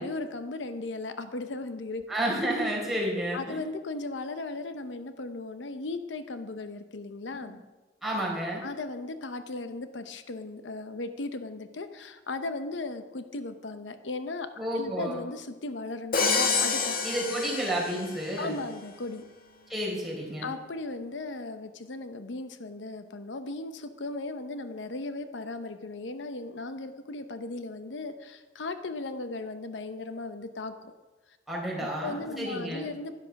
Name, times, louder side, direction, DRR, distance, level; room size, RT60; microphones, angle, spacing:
voice 1, 0.0-2.0 3.3-7.6 8.6-14.5 14.7-17.0 18.4-19.2 20.4-30.9 31.8-33.2, left 2 dB, 85° left, 9 dB, 0.8 m, -37 dB
voice 2, 2.1-3.6 7.4-7.5 8.0-8.7 14.6-15.2 17.0-18.6 19.7-20.5 31.5-32.9, right 1 dB, ahead, -4 dB, 4.2 m, -31 dB
Crash cymbal, 16.1-18.3, left 4 dB, 55° left, 1.7 m, -28 dB
11.5 x 11.0 x 5.9 m, 1.2 s
head